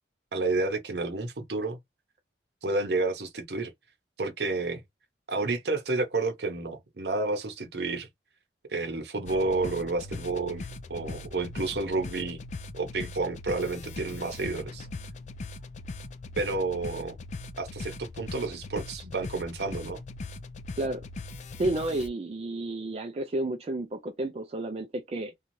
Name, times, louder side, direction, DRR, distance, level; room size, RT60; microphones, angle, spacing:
voice 1, 0.3-1.8 2.6-3.7 4.2-4.8 5.3-8.1 8.7-12.4 12.8-14.9 16.4-17.1 17.6-20.0, right 3 dB, 65° right, 0.7 m, -30 dB
sound 1, 9.3-22.1, left 3 dB, 40° left, 0.3 m, -40 dB
voice 2, 21.6-25.3, right 2 dB, 35° right, 0.3 m, -31 dB
2.7 x 2.3 x 3.0 m
head